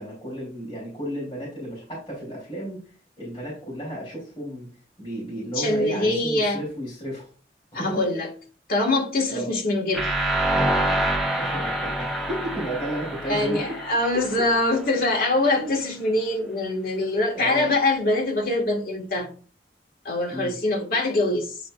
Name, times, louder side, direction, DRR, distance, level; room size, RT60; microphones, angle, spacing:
voice 1, 0.0-2.8 3.2-4.7 5.0-7.3 7.7-8.0 9.3-9.5 11.3-13.8 15.6-15.7 17.3-17.7 20.3-20.5, right 1 dB, 30° left, 3.2 m, -33 dB
voice 2, 5.6-6.6 7.7-8.3 8.7-10.2 13.2-19.3 20.1-21.5, left 2 dB, 55° left, 1.7 m, -24 dB
sound 1, 9.9-14.8, right 1 dB, ahead, 0.7 m, -26 dB
8.9 x 4.4 x 2.4 m
head